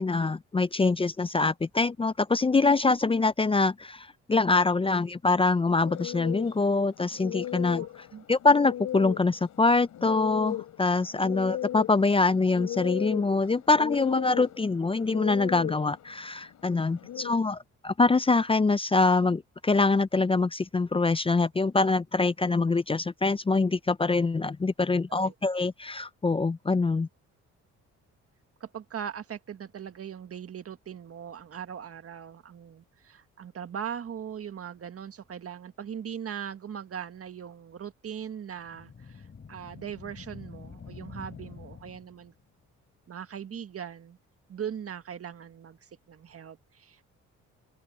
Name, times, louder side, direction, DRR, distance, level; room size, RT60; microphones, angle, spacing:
voice 1, 0.0-7.8 8.3-27.1, left 3 dB, 20° left, 0.5 m, -24 dB
sound 1, 5.8-17.3, left 12 dB, 70° left, 4.7 m, -37 dB
voice 2, 7.8-8.2 25.2-25.3 28.6-42.3 43.1-44.2 44.5-47.0, right 8 dB, 50° right, 1.7 m, -40 dB
sound 2, 38.6-42.4, left 6 dB, 40° left, 3.7 m, -46 dB
open air
cardioid pair, 90°, 30 cm